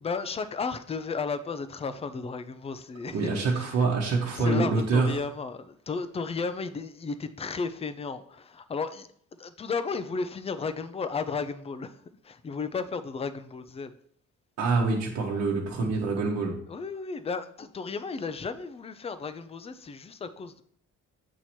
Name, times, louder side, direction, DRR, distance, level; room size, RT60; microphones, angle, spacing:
voice 1, 0.0-3.7 4.1-9.1 9.4-12.0 12.2-13.9 16.7-20.6, left 4 dB, 20° left, 0.4 m, -34 dB
voice 2, 3.1-5.1 14.6-16.6, right 3 dB, 55° right, 1.1 m, -26 dB
8.0 x 2.9 x 4.3 m
cardioid pair, 90°, 30 cm